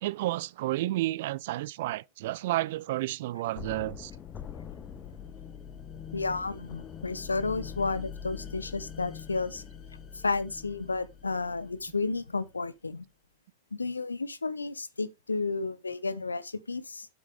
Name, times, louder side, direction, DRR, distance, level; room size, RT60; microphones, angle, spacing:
voice 1, 0.0-4.1, right 16 dB, 55° right, 0.4 m, -31 dB
sound 1, 3.6-12.4, left 7 dB, 25° left, 1.0 m, -44 dB
voice 2, 6.1-9.6 10.1-13.1 13.7-17.1, left 3 dB, 80° left, 0.8 m, -32 dB
8.2 x 7.9 x 3.3 m
figure-of-eight pair, 90°, 0 cm